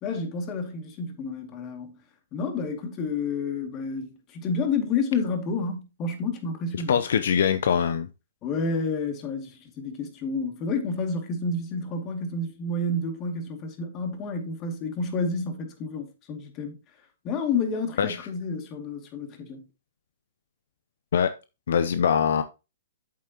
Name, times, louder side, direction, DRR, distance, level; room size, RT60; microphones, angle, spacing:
voice 1, 0.0-2.0 2.3-7.0 8.4-16.8 17.2-19.6, left 3 dB, 30° left, 2.2 m, -30 dB
voice 2, 6.9-8.1 18.0-18.2 21.1-21.3 21.7-22.4, left 7 dB, 70° left, 0.6 m, -22 dB
8.5 x 7.6 x 2.9 m
hypercardioid pair, 135°, 0 cm